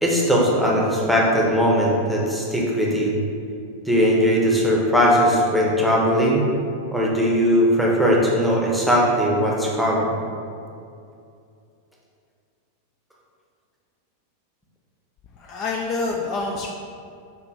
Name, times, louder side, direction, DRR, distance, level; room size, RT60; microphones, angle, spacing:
voice 1, 0.0-3.2 3.9-6.5 6.9-10.1, equal, ahead, -4 dB, 0.8 m, -19 dB
voice 2, 15.4-16.7, left 3 dB, 35° left, 0 dB, 0.4 m, -27 dB
4.7 x 2.6 x 3.6 m, 2.4 s
figure-of-eight pair, 90°, 0 cm